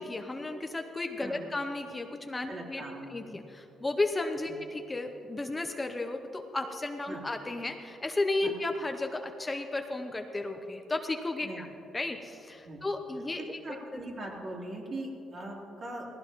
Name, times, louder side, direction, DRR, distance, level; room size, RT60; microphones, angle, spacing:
voice 1, 0.0-2.8 3.1-11.7 11.9-14.0, left 2 dB, 20° left, 5 dB, 0.8 m, -34 dB
voice 2, 1.2-1.5 2.5-3.5 4.5-4.6 7.1-7.2 8.4-8.5 11.4-11.7 12.6-12.8 13.4-16.1, right 1 dB, 45° right, -3 dB, 3.4 m, -41 dB
18.5 x 16.0 x 3.1 m, 2.9 s
cardioid pair, 90°, 0 cm